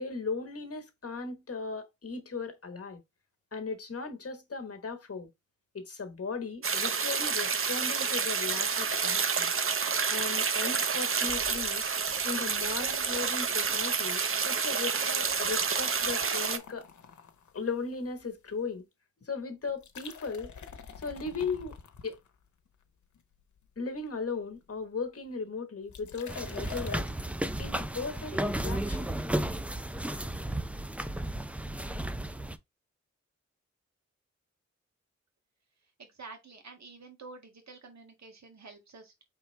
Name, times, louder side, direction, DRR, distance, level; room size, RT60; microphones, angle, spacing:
voice 1, 0.0-3.0 3.5-5.3 5.7-9.5 10.1-11.8 12.2-16.8 17.5-18.8 19.2-20.5 21.0-21.8 22.0-22.2 23.8-27.0 27.6-29.2, left 4 dB, 55° left, 1.3 m, -37 dB
sound 1, 6.6-16.6, right 5 dB, 45° right, 0.7 m, -29 dB
sound 2, 8.4-10.3 10.6-10.7 11.3-14.1 14.4-14.7 15.1-18.5 19.7-22.7 23.1-23.7 23.9-24.0 24.3-24.4 24.5-24.8 25.9-27.2, left 7 dB, 80° left, 0.8 m, -48 dB
sound 3, 26.3-32.6, right 1 dB, 5° right, 0.5 m, -33 dB
voice 2, 36.0-39.2, right 4 dB, 70° right, 1.7 m, -49 dB
4.6 x 3.5 x 3.2 m
cardioid pair, 55°, 29 cm